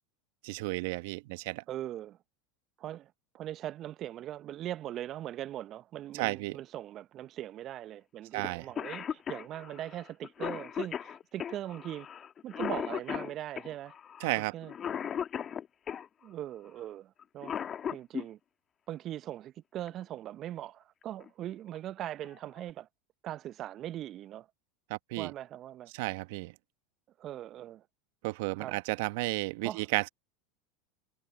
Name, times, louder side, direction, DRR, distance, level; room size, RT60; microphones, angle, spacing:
voice 1, 0.4-1.6 6.1-6.6 8.3-8.6 14.2-14.5 24.9-25.3 25.9-26.5 28.2-30.1, right 24 dB, 65° right, 1.4 m, -33 dB
voice 2, 1.7-2.2 2.8-12.1 12.4-14.0 14.5-14.7 16.2-17.6 17.9-18.4 18.9-22.9 23.2-24.5 25.2-25.9 27.2-27.8 28.5-28.8 29.6-29.8, right 12 dB, 45° right, 1.0 m, -40 dB
Cough, 8.4-8.5 8.8-16.1 17.2-18.3 19.9-20.0 21.0-21.3 21.8-21.9 22.2-22.7, left 8 dB, 35° left, 1.8 m, -37 dB
hypercardioid pair, 85°, 0 cm